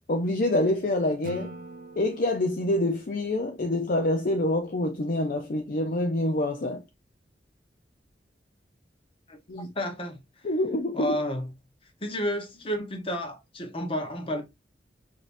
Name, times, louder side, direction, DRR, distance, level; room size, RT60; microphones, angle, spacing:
voice 1, 0.1-1.5 2.0-6.8 9.5-9.7 10.4-11.2, left 1 dB, 50° left, 0.5 m, -26 dB
Acoustic guitar / Strum, 1.2-4.4, right 1 dB, 50° right, 0.6 m, -44 dB
voice 2, 9.7-10.5 10.9-11.5 12.0-14.4, equal, 30° left, 1.0 m, -31 dB
5.1 x 2.8 x 2.5 m
head